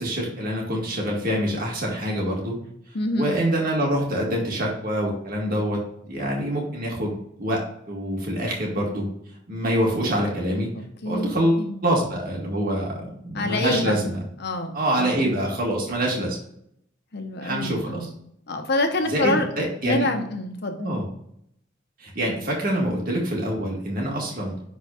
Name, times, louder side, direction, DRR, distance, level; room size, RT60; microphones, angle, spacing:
voice 1, 0.0-2.6 3.1-9.1 9.5-10.7 11.1-14.2 14.7-16.4 17.4-18.1 19.1-20.1 20.8-21.1 22.0-24.6, right 1 dB, 45° right, -2 dB, 1.9 m, -25 dB
voice 2, 2.9-3.3 10.7-11.8 13.3-13.9 14.4-15.2 17.1-18.1 18.5-19.5 19.8-20.8, left 2 dB, 55° left, 5 dB, 1.0 m, -27 dB
10.5 x 4.1 x 2.4 m, 0.73 s
head